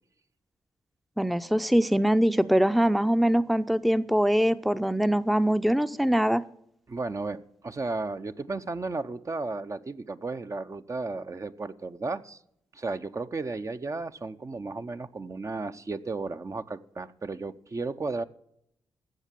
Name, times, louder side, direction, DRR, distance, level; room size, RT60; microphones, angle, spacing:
voice 1, 1.2-6.4, equal, ahead, 13 dB, 0.6 m, -23 dB
voice 2, 6.9-12.4 12.7-18.2, right 3 dB, 35° right, 10 dB, 0.7 m, -34 dB
15.5 x 6.5 x 7.4 m, 0.74 s
supercardioid pair, 45°, 9 cm